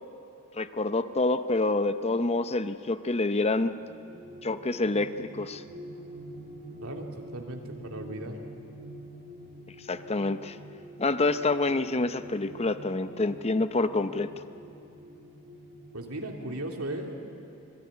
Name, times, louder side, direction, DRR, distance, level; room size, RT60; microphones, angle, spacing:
voice 1, 0.5-3.8 4.4-5.6 9.9-10.6 11.0-14.4, left 2 dB, 30° left, 11 dB, 0.7 m, -27 dB
sound 1, 3.5-16.3, right 1 dB, 35° right, 6.9 m, -46 dB
voice 2, 7.3-8.4 15.9-17.1, right 1 dB, 70° right, 2 dB, 3.0 m, -36 dB
27.5 x 20.5 x 9.7 m, 2.7 s
head